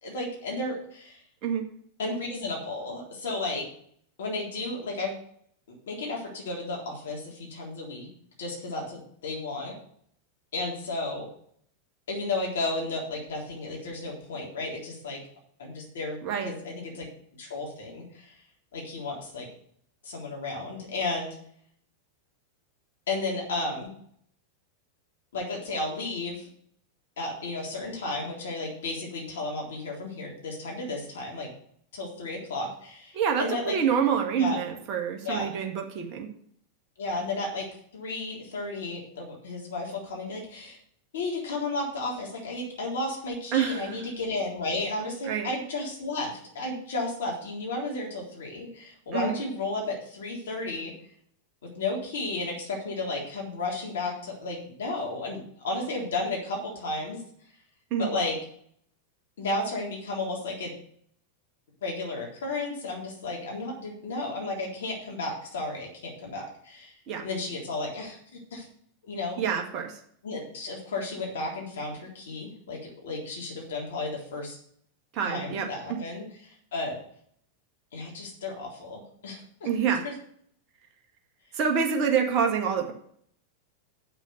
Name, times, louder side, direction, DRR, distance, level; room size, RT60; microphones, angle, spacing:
voice 1, 0.0-1.2 2.0-3.7 4.2-5.1 5.9-8.1 8.4-9.8 10.5-11.3 12.1-15.2 15.6-16.2 16.4-17.1 17.4-18.4 18.7-19.5 20.0-21.4 23.1-23.9 25.3-26.5 27.2-31.5 31.9-33.8 34.3-34.6 35.2-35.5 37.0-37.7 37.9-40.8 41.1-50.9 51.6-57.2 58.0-58.4 59.4-60.8 61.8-67.0 67.2-68.2 68.5-68.7 69.1-69.4 70.2-74.6 75.2-77.0 77.9-79.7 80.0-80.1, left 2 dB, 60° left, -1 dB, 3.7 m, -33 dB
voice 2, 33.1-36.3 43.5-44.0 45.2-45.5 49.1-49.4 57.9-58.1 67.1-67.2 69.4-70.0 75.1-76.0 79.6-80.0 81.5-82.9, right 7 dB, 40° right, 2 dB, 1.7 m, -27 dB
7.9 x 6.1 x 8.0 m, 0.63 s
figure-of-eight pair, 90°, 0 cm